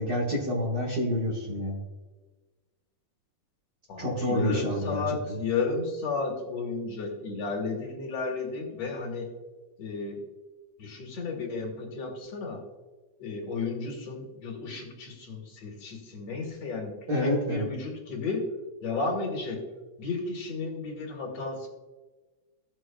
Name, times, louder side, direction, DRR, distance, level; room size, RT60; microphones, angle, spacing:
voice 1, 0.0-1.8 4.0-5.0 5.3-5.4 17.1-17.7, equal, 45° right, -4 dB, 1.7 m, -28 dB
voice 2, 3.9-9.3 9.8-10.2 10.8-12.6 13.2-18.5 18.8-19.6 20.0-21.7, left 4 dB, 55° left, 0 dB, 2.6 m, -33 dB
17.0 x 6.3 x 2.3 m, 1.2 s
omnidirectional pair, 3.5 m